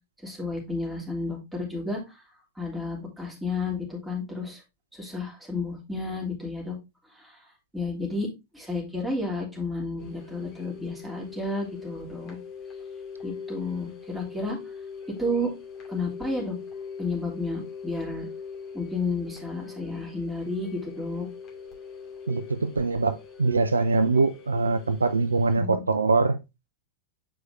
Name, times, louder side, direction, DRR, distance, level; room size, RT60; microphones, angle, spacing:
voice 1, 0.2-2.2 2.6-4.6 5.0-6.8 7.1-7.3 7.7-8.3 8.5-12.4 13.2-14.6 15.1-15.5 15.9-16.6 17.0-18.3 18.7-21.3 25.5-25.8, left 2 dB, 5° right, 2.8 m, -31 dB
sound 1, 10.0-25.6, left 6 dB, 35° left, 2.4 m, -42 dB
voice 2, 22.3-26.4, right 3 dB, 75° right, 0.5 m, -23 dB
7.8 x 4.8 x 2.6 m
figure-of-eight pair, 90°, 0 cm